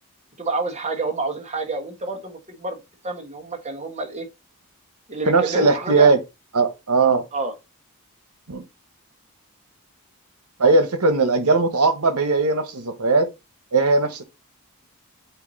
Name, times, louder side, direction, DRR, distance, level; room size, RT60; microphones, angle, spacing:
voice 1, 0.4-4.3 5.1-6.1 7.3-7.5, right 3 dB, 30° right, 1.4 m, -28 dB
voice 2, 5.3-6.2 6.5-7.2 8.5-8.6 10.6-13.3 13.7-14.2, right 3 dB, 80° right, 1.2 m, -18 dB
8.2 x 2.8 x 4.1 m
head